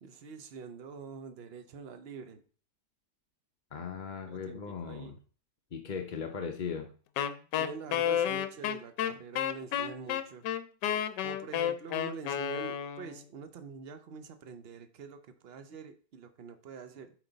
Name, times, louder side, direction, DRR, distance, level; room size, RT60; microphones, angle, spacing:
voice 1, 0.0-2.4 4.3-5.2 7.6-10.4 11.2-17.1, right 5 dB, 50° right, 9 dB, 0.8 m, -45 dB
voice 2, 3.7-5.2 5.7-6.9, left 6 dB, 55° left, 4 dB, 0.5 m, -38 dB
Wind instrument woodwind instrument, 7.2-13.2, left 10 dB, 75° left, 1.2 m, -31 dB
8.9 x 5.2 x 4.0 m, 0.41 s
omnidirectional pair, 1.9 m